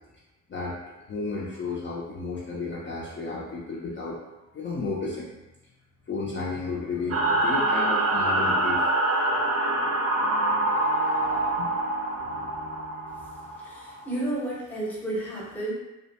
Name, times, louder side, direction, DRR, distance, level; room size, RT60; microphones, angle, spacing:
voice 1, 1.1-4.2 4.5-5.3 6.1-8.8 11.6-11.7, left 3 dB, 40° left, -6 dB, 0.5 m, -32 dB
sound 1, 6.6-13.6, left 2 dB, 85° left, 0.6 m, -43 dB
sound 2, 7.1-14.0, right 2 dB, 50° right, 0.5 m, -25 dB
voice 2, 13.6-15.7, right 2 dB, 5° left, -6 dB, 0.7 m, -32 dB
2.4 x 2.1 x 2.8 m, 0.99 s
cardioid pair, 115°, 31 cm